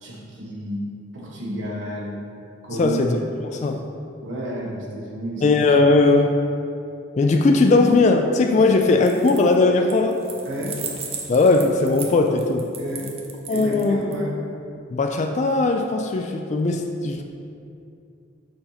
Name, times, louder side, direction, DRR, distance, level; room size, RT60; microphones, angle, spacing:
voice 1, 0.0-2.2 2.6-3.0 3.7-3.8 4.2-5.5 8.7-8.8 10.4-10.8 12.8-13.1 13.5-14.4, equal, 65° right, -4 dB, 1.3 m, -31 dB
voice 2, 2.7-3.2 3.5-3.8 5.4-6.4 7.2-10.2 11.3-12.7 13.5-14.0 14.9-17.2, left 3 dB, 35° left, 4 dB, 0.3 m, -18 dB
sound 1, 9.0-9.6 9.9-14.1, right 5 dB, 30° right, 0.6 m, -35 dB
6.8 x 2.8 x 5.7 m, 2.5 s
head